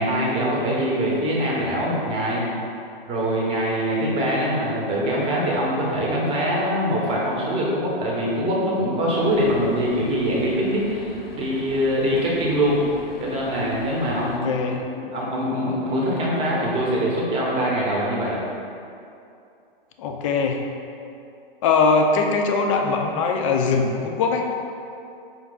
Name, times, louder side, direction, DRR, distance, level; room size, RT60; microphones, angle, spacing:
voice 1, 0.0-2.4 3.1-12.8 13.2-18.4, equal, 20° right, -4 dB, 0.8 m, -23 dB
sound 1, 9.3-14.4, left 3 dB, 80° left, 0.6 m, -40 dB
voice 2, 14.2-14.9 20.0-20.7 21.6-24.5, left 4 dB, 35° left, 3 dB, 0.4 m, -21 dB
5.1 x 2.4 x 3.8 m, 2.6 s
hypercardioid pair, 135°, 29 cm